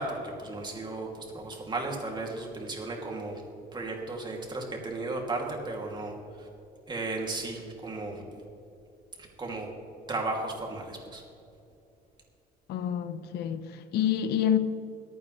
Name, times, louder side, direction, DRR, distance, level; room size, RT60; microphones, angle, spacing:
voice 1, 0.0-3.4 3.7-6.1 6.4-6.5 6.9-8.2 9.4-9.7 10.1-11.2, right 2 dB, 25° right, 2.8 m, -35 dB
voice 2, 12.7-14.6, left 9 dB, 75° left, 0.8 m, -28 dB
23.0 x 9.0 x 3.3 m
cardioid pair, 110°, 17 cm